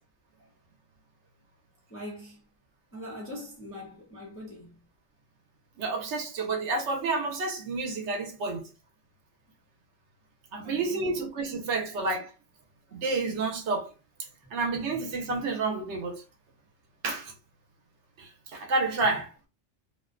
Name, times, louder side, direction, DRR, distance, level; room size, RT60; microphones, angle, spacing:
voice 1, 1.9-2.5 2.9-4.8 10.6-11.2 14.9-15.0, left 1 dB, 20° left, 0.3 m, -42 dB
voice 2, 5.8-8.7 10.5-12.3 12.9-13.9 14.5-16.2 17.0-17.3 18.2-19.3, right 3 dB, 70° right, 0.9 m, -30 dB
2.5 x 2.1 x 2.4 m
omnidirectional pair, 1.3 m